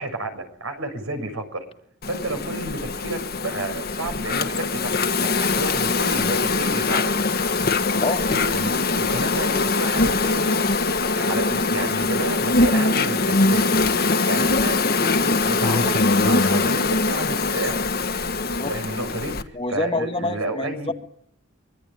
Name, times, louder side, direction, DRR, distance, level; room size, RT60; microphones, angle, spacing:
voice 1, 0.0-1.6 2.1-7.1 8.3-10.5 11.0-13.7 14.3-17.8 18.7-20.9, right 2 dB, 75° right, 7 dB, 6.7 m, -31 dB
Insect, 2.0-19.4, left 3 dB, 45° left, 1.5 m, -22 dB
voice 2, 18.4-18.7 19.5-20.9, left 2 dB, 25° left, 5 dB, 1.9 m, -27 dB
25.0 x 23.5 x 9.3 m, 0.66 s
head